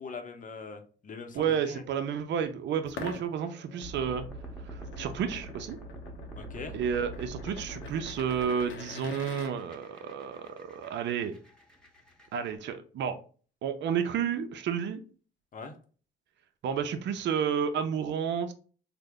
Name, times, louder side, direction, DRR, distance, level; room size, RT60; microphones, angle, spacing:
voice 1, 0.0-1.8 6.4-6.7 15.5-15.7, left 4 dB, 40° left, 7 dB, 0.7 m, -42 dB
voice 2, 1.3-4.2 4.7-5.8 6.7-11.3 12.3-13.2 13.6-15.0 16.6-18.5, right 7 dB, 65° right, 7 dB, 0.5 m, -31 dB
sound 1, 2.9-9.5, left 5 dB, 75° left, 0.5 m, -46 dB
sound 2, 3.8-12.5, right 2 dB, 5° left, 1.0 m, -45 dB
3.3 x 2.1 x 3.6 m, 0.39 s
cardioid pair, 90°, 20 cm